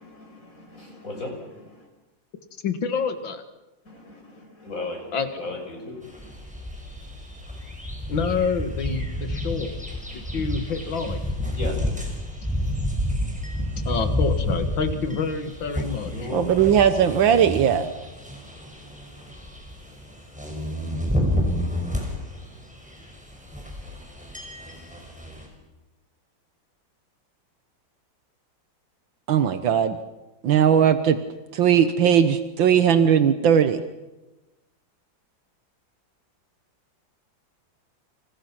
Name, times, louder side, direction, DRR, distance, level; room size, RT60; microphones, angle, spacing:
voice 1, 0.0-1.9 3.8-6.3 9.9-10.4 11.6-12.0 16.0-16.5, left 2 dB, 45° left, 2 dB, 6.5 m, -37 dB
voice 2, 2.6-3.4 5.1-5.3 8.1-9.8 10.1-11.6 13.6-16.1, left 5 dB, 80° left, 8 dB, 2.5 m, -28 dB
sound 1, 6.0-25.5, left 1 dB, 5° right, 5.7 m, -30 dB
voice 3, 16.3-17.9 29.3-30.0 30.4-31.2 31.5-33.8, right 8 dB, 80° right, 10 dB, 1.8 m, -18 dB
29.0 x 26.5 x 6.0 m, 1.1 s
omnidirectional pair, 2.1 m